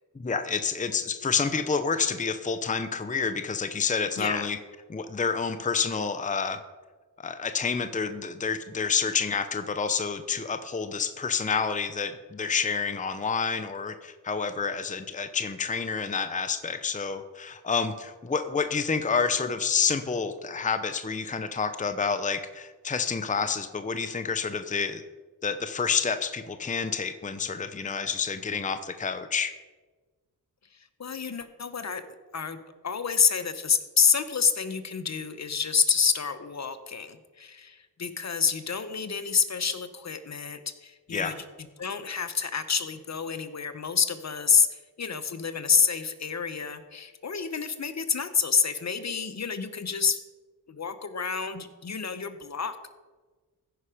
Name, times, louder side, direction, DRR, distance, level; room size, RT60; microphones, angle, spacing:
voice 1, 0.2-4.6 4.9-6.6 7.2-25.0 25.4-29.5 41.1-41.4, left 5 dB, 20° left, 9 dB, 0.7 m, -29 dB
voice 2, 4.2-4.5 30.7-32.0 32.3-32.6 32.8-41.3 41.8-50.2 50.7-52.9, left 6 dB, 40° left, 11 dB, 0.9 m, -28 dB
15.0 x 5.6 x 5.0 m, 1.3 s
cardioid pair, 50°, 40 cm